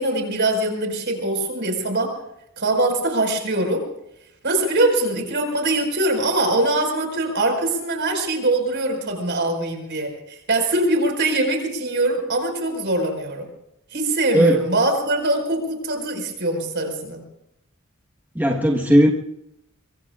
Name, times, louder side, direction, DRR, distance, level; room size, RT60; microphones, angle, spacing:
voice 1, 0.0-2.2 2.6-3.8 4.4-13.5 13.9-17.2, right 2 dB, 55° right, 3 dB, 5.0 m, -22 dB
voice 2, 18.3-19.1, equal, 10° right, 0 dB, 1.3 m, -16 dB
24.0 x 23.5 x 2.4 m, 0.81 s
head